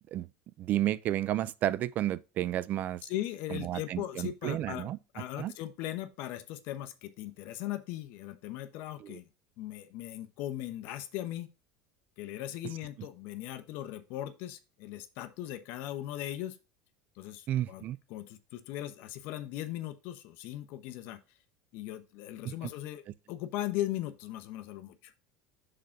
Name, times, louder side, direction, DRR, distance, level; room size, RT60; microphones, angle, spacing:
voice 1, 0.6-3.0 3.5-5.0 5.4-5.5 9.0-9.2 17.5-18.0 22.4-22.7, right 13 dB, 45° right, 0.4 m, -32 dB
voice 2, 3.1-4.9 5.1-9.2 9.6-11.5 12.2-16.6 17.2-17.8 18.1-21.2 21.7-23.0 23.3-25.1, left 13 dB, 65° left, 0.9 m, -38 dB
6.6 x 3.8 x 5.8 m
supercardioid pair, 120°, 4 cm